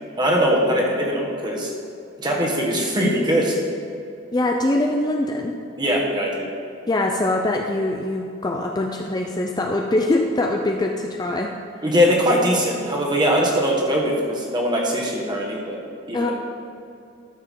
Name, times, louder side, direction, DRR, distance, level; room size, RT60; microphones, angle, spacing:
voice 1, 0.2-1.7 2.2-3.6 5.8-6.5 11.8-16.3, equal, 20° right, -2 dB, 1.4 m, -21 dB
voice 2, 4.3-5.5 6.9-11.5 16.1-16.3, left 2 dB, 20° left, 2 dB, 0.4 m, -23 dB
13.0 x 6.8 x 3.7 m, 2.6 s
head